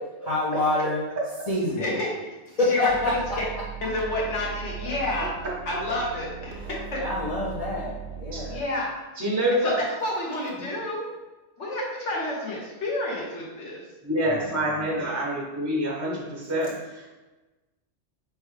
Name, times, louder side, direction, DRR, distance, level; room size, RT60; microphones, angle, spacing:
voice 1, 0.3-1.1 1.5-1.9 2.6-3.6 7.0-8.7 14.3-14.9, left 2 dB, 35° left, -6 dB, 0.7 m, -27 dB
voice 2, 1.8-2.3 2.7-3.5 3.8-5.3 5.6-7.0 8.5-8.9 9.6-11.1 11.6-13.8, left 1 dB, 70° left, -3 dB, 1.4 m, -30 dB
sound 1, 2.9-8.6, right 7 dB, 55° right, 0.7 m, -38 dB
voice 3, 9.2-9.7 14.0-17.1, right 1 dB, 20° right, -4 dB, 0.6 m, -27 dB
4.5 x 3.5 x 3.2 m, 1.2 s
omnidirectional pair, 1.3 m